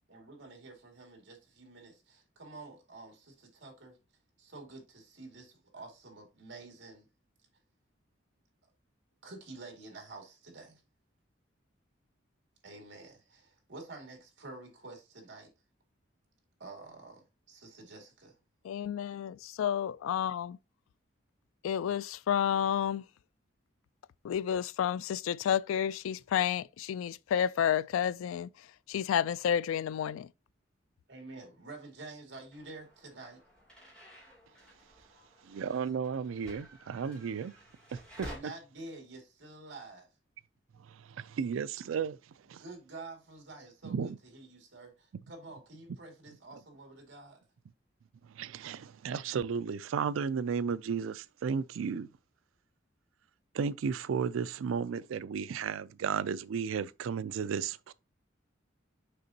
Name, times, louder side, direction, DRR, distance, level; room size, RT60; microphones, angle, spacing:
voice 1, 0.1-4.0 4.4-7.1 9.2-10.8 12.6-15.5 16.6-18.3 31.1-33.4 38.2-40.1 42.6-47.4, right 3 dB, 70° right, 2.1 m, -49 dB
voice 2, 18.6-20.6 21.6-23.0 24.2-28.5 28.9-30.3, left 9 dB, 90° left, 0.3 m, -30 dB
sound 1, 32.5-38.4, equal, 5° left, 2.8 m, -52 dB
voice 3, 35.5-37.5 37.9-38.3 40.9-42.2 42.5-42.6 43.8-44.2 48.2-52.1 53.5-57.9, right 6 dB, 90° right, 0.4 m, -34 dB
6.6 x 5.1 x 2.8 m
head